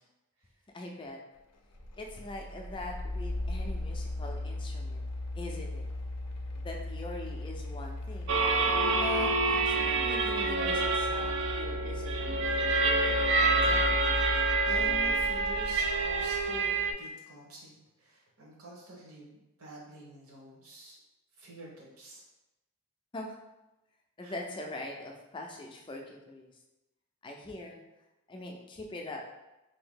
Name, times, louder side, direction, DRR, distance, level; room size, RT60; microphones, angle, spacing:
voice 1, 0.7-1.2 2.0-5.1 5.4-5.9 6.6-8.4 8.9-12.6 23.1-23.3 24.2-26.5 27.2-27.8 28.3-29.2, left 2 dB, 20° left, 1 dB, 0.4 m, -42 dB
sound 1, 1.7-16.4, left 2 dB, 90° left, 0.5 m, -37 dB
sound 2, 8.3-16.9, right 3 dB, 55° right, 0.3 m, -27 dB
voice 2, 13.5-21.0 21.4-22.2 24.2-24.3, right 1 dB, 75° right, -3 dB, 1.0 m, -47 dB
2.7 x 2.7 x 3.6 m, 0.99 s
head